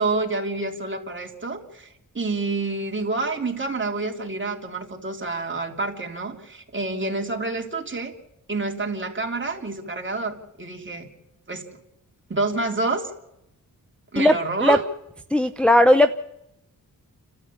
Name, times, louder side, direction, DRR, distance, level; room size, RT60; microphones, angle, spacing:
voice 1, 0.0-1.9 2.1-8.1 8.5-11.1 11.5-11.6 12.3-13.1 14.1-14.8, right 3 dB, 35° right, 2 dB, 3.4 m, -28 dB
voice 2, 15.3-16.1, left 1 dB, 5° left, 6 dB, 0.7 m, -16 dB
30.0 x 13.0 x 8.6 m, 0.87 s
cardioid pair, 75°, 35 cm